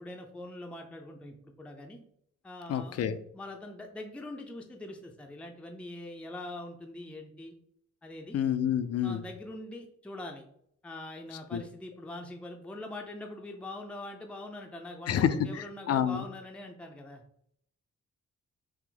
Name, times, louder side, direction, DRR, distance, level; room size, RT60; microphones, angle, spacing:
voice 1, 0.0-2.0 2.4-3.0 3.3-7.5 8.0-8.4 9.0-10.5 10.8-17.2, left 2 dB, 5° left, 2 dB, 0.5 m, -43 dB
voice 2, 2.7-3.2 8.3-9.2 11.5-11.6 15.1-16.2, left 9 dB, 60° left, 12 dB, 0.5 m, -28 dB
5.9 x 2.0 x 3.8 m, 0.70 s
cardioid pair, 100°, 29 cm